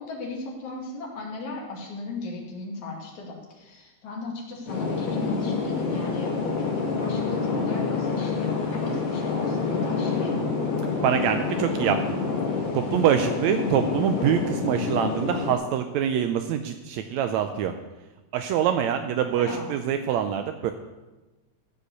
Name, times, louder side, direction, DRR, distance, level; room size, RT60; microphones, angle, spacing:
voice 1, 0.0-10.3 19.4-19.8, left 2 dB, 80° left, -1 dB, 3.7 m, -36 dB
sound 1, 4.7-15.5, left 4 dB, 55° left, 3.2 m, -27 dB
voice 2, 11.0-12.2 12.7-17.8 18.3-20.7, right 9 dB, 80° right, 7 dB, 1.9 m, -25 dB
15.0 x 5.4 x 8.1 m, 1.1 s
omnidirectional pair, 3.3 m